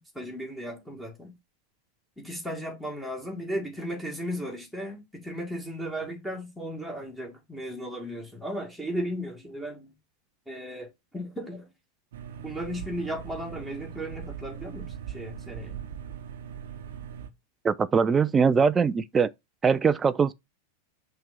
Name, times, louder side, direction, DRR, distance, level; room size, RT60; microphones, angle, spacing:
voice 1, 0.0-1.3 2.2-9.9 10.5-11.7 12.4-15.7, equal, 5° left, 2.1 m, -35 dB
sound 1, 12.1-17.3, right 8 dB, 60° right, 0.9 m, -40 dB
voice 2, 17.6-19.3 19.6-20.3, right 5 dB, 20° right, 0.4 m, -22 dB
5.8 x 3.3 x 5.6 m
figure-of-eight pair, 90°, 0 cm